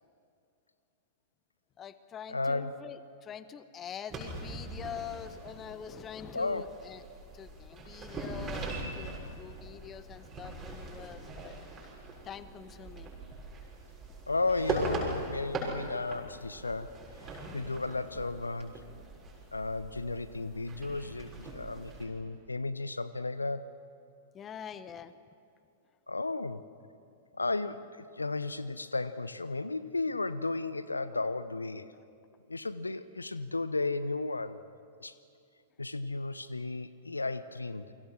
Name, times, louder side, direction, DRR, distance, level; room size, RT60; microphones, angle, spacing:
voice 1, 1.8-7.0 7.3-11.6 12.2-13.1 24.3-25.1 31.1-31.2, left 8 dB, 25° left, 13 dB, 1.1 m, -45 dB
voice 2, 2.3-2.8 6.3-6.7 14.3-18.9 19.5-23.7 26.1-26.7 27.4-31.9 32.5-34.6 35.0-35.1 35.8-37.9, left 3 dB, 85° left, 15 dB, 0.8 m, -34 dB
sound 1, 4.1-22.1, right 2 dB, 20° right, 6.8 m, -41 dB
29.5 x 24.0 x 6.3 m, 2.4 s
figure-of-eight pair, 100°, 0 cm